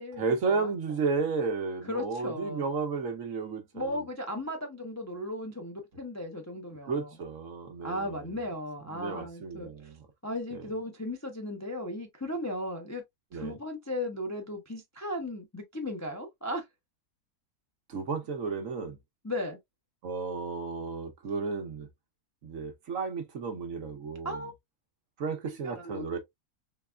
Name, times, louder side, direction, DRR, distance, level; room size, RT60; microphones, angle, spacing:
voice 1, 0.2-4.0 6.9-8.2 8.9-10.0 10.5-10.6 13.3-13.6 17.9-19.0 20.0-21.9 22.4-24.4 25.2-26.2, right 4 dB, 65° right, 1.3 m, -33 dB
voice 2, 1.8-2.6 3.7-7.1 7.8-9.7 10.2-13.0 13.3-16.7 19.2-19.6 24.2-24.5 25.5-26.2, left 1 dB, 20° left, 0.5 m, -36 dB
4.0 x 3.4 x 2.3 m
omnidirectional pair, 1.6 m